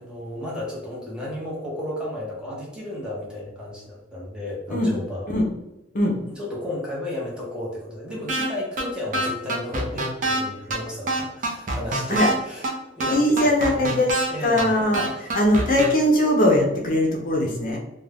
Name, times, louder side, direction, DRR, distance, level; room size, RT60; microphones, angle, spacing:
voice 1, 0.0-5.3 6.3-13.9 14.3-14.9 15.1-15.4, left 1 dB, 5° right, -5 dB, 0.7 m, -33 dB
sound 1, 8.3-8.5 8.8-8.9 9.1-10.4 10.7-10.8 11.1-12.3 12.6-12.7 13.0-14.3 14.6-14.7 14.9-15.9, right 2 dB, 45° right, 0.6 m, -25 dB
voice 2, 13.1-14.1 14.4-17.8, left 1 dB, 45° left, -1 dB, 0.6 m, -20 dB
2.5 x 2.2 x 3.3 m, 0.91 s
head